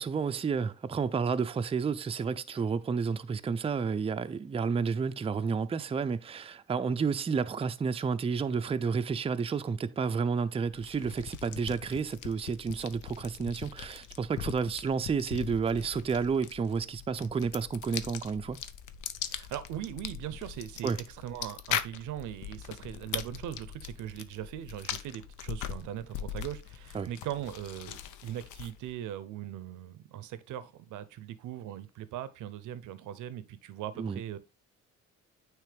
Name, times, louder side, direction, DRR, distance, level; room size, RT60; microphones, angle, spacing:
voice 1, 0.0-18.6 20.8-21.0 26.9-27.1 34.0-34.2, right 5 dB, 20° right, 0.4 m, -31 dB
sound 1, 10.7-28.9, left 10 dB, 85° left, 0.6 m, -41 dB
voice 2, 19.3-34.4, right 11 dB, 85° right, 0.6 m, -40 dB
9.1 x 3.1 x 3.3 m
cardioid pair, 90°, 30 cm